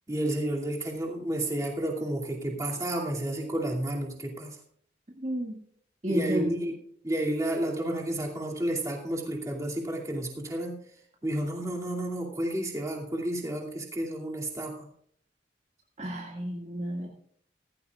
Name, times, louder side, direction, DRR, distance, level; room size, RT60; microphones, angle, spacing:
voice 1, 0.1-4.6 6.1-6.7 7.0-10.8 11.2-14.9, right 1 dB, 20° right, -2 dB, 2.5 m, -31 dB
voice 2, 5.1-5.6 6.0-6.5 16.0-17.1, equal, 35° right, -1 dB, 1.9 m, -31 dB
16.5 x 15.0 x 2.4 m, 0.62 s
head